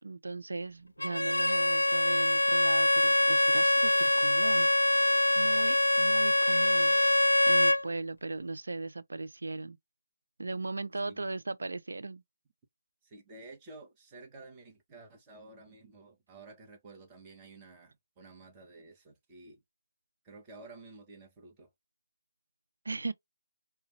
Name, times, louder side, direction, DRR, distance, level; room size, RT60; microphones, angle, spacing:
voice 1, 0.0-7.0 7.5-9.8 10.4-12.2 22.8-23.1, right 3 dB, 70° right, 0.5 m, -38 dB
Bowed string instrument, 1.0-7.9, left 1 dB, 90° left, 0.4 m, -24 dB
voice 2, 13.0-19.6 20.2-21.7, right 3 dB, 15° right, 1.0 m, -52 dB
4.8 x 2.2 x 3.1 m
figure-of-eight pair, 155°, 0 cm